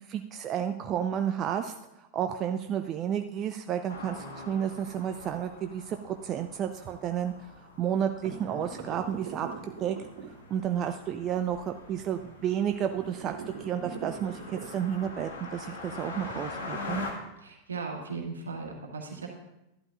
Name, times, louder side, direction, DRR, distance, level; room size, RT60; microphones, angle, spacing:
voice 1, 0.1-7.3 7.8-10.0 10.5-17.0, right 9 dB, 30° right, 7 dB, 0.4 m, -31 dB
sound 1, 3.9-17.1, left 3 dB, 65° left, 1.6 m, -44 dB
sound 2, 8.2-10.8 12.9-15.2, right 5 dB, 50° right, 2.2 m, -42 dB
voice 2, 17.4-19.3, right 4 dB, 70° right, 0 dB, 1.8 m, -37 dB
13.0 x 11.5 x 2.5 m, 0.92 s
figure-of-eight pair, 90°, 0 cm